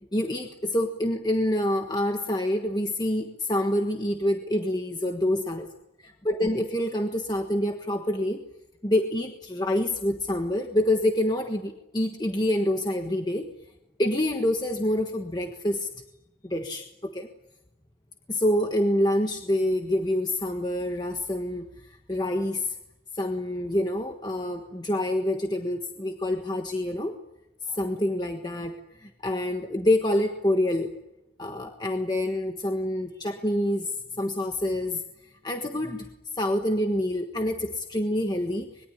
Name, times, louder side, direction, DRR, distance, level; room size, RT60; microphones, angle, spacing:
voice 1, 0.1-5.7 6.0-8.4 8.8-13.5 14.0-15.9 16.4-17.3 18.3-21.6 22.1-22.7 23.1-27.1 27.7-30.9 31.4-36.1 36.4-38.9, left 1 dB, 20° left, 4 dB, 1.4 m, -27 dB
26.0 x 21.5 x 9.9 m, 0.93 s
head